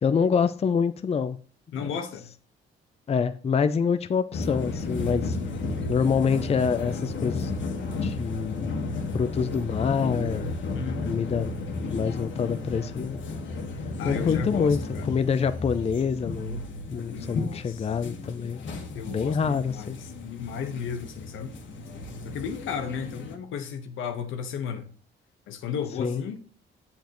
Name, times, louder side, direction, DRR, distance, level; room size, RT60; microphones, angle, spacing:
voice 1, 0.0-1.4 1.8-1.9 3.1-5.4 5.9-7.6 8.0-8.8 9.1-10.5 11.0-11.5 11.9-13.3 14.0-14.8 15.0-16.6 16.9-18.6 19.1-20.0 26.0-26.2, left 6 dB, 30° left, 0.5 m, -26 dB
voice 2, 1.7-2.3 5.8-6.0 10.7-11.2 14.0-15.1 17.1-17.9 18.9-21.5 22.2-24.9 25.5-26.4, left 7 dB, 85° left, 1.2 m, -34 dB
sound 1, 4.3-23.4, left 3 dB, 70° left, 1.7 m, -33 dB
7.2 x 7.1 x 3.1 m
cardioid pair, 90°, 20 cm